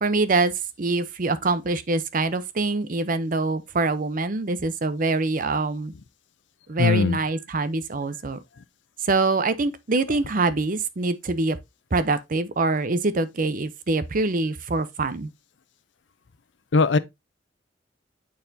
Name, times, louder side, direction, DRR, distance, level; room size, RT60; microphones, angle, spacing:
voice 1, 0.0-5.9 6.7-8.4 9.0-11.6 11.9-15.3, right 3 dB, 50° right, 0.7 m, -24 dB
voice 2, 6.8-7.2 16.7-17.0, left 4 dB, 80° left, 0.6 m, -19 dB
9.0 x 4.1 x 2.7 m
head